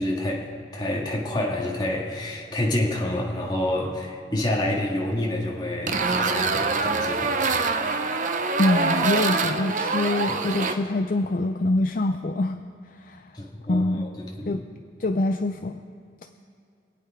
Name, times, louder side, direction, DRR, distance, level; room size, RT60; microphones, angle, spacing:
voice 1, 0.0-7.6 13.3-14.6, left 1 dB, 25° left, -2 dB, 1.9 m, -28 dB
sound 1, 5.9-10.7, right 4 dB, 45° right, 0.8 m, -24 dB
voice 2, 8.6-12.6 12.9-13.3 13.7-14.1 14.5-14.6 15.0-15.8, left 2 dB, 50° left, 6 dB, 0.5 m, -25 dB
25.0 x 8.6 x 4.9 m, 2.4 s
head